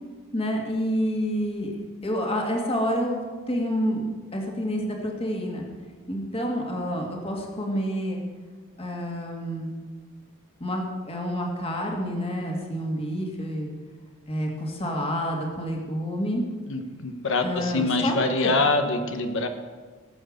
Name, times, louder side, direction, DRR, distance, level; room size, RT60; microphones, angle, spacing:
voice 1, 0.3-1.8 2.0-4.0 4.3-5.7 6.1-8.2 8.8-9.7 10.6-13.7 14.3-16.4 17.4-18.6, equal, 30° left, 0 dB, 2.2 m, -28 dB
voice 2, 16.7-19.5, left 3 dB, 65° left, 7 dB, 1.2 m, -25 dB
17.5 x 7.9 x 6.6 m, 1.5 s
head